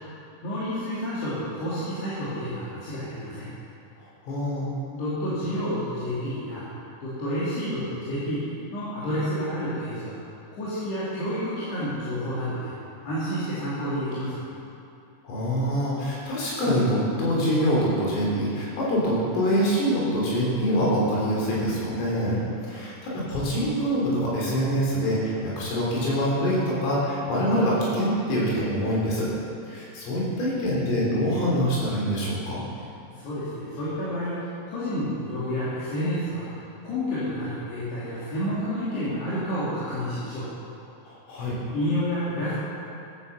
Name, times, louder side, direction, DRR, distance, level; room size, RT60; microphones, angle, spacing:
voice 1, 0.4-3.5 4.9-6.7 7.0-8.4 8.7-10.2 10.5-12.7 13.0-14.4 22.2-22.5 33.2-36.5 36.8-40.5 41.7-42.5, equal, 60° left, -10 dB, 4.7 m, -29 dB
voice 2, 4.3-4.7 15.2-22.4 22.7-29.3 29.7-32.7 41.1-41.6, equal, 85° left, -6 dB, 6.3 m, -25 dB
15.5 x 11.0 x 7.0 m, 2.7 s
omnidirectional pair, 5.6 m